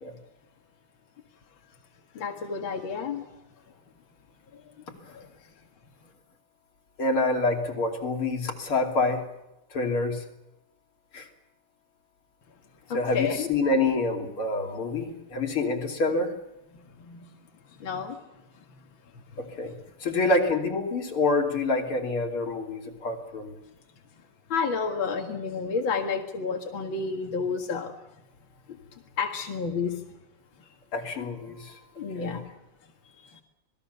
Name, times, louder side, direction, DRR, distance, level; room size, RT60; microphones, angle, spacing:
voice 1, 2.1-3.2 4.5-4.6 5.1-5.3 12.9-13.5 16.7-17.3 17.8-18.2 19.5-19.6 24.5-28.0 29.2-30.0 32.0-32.6 33.2-33.4, left 5 dB, 65° left, 2 dB, 2.6 m, -31 dB
voice 2, 7.0-9.3 9.7-10.2 11.1-11.3 12.9-16.3 19.4-19.7 20.0-23.6 30.9-31.8 32.2-32.4, left 2 dB, 85° left, 2 dB, 3.9 m, -27 dB
27.0 x 20.5 x 6.9 m, 0.91 s
omnidirectional pair, 2.3 m